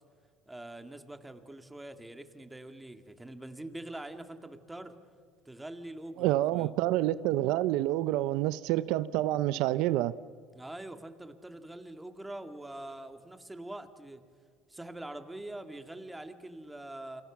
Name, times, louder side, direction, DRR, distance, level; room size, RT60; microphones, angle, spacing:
voice 1, 0.5-4.9 5.5-6.7 10.5-14.2 14.7-17.2, right 1 dB, 10° right, 2.3 m, -44 dB
voice 2, 6.2-10.1, right 15 dB, 80° right, 0.6 m, -28 dB
29.0 x 25.0 x 7.4 m
cardioid pair, 110°, 0 cm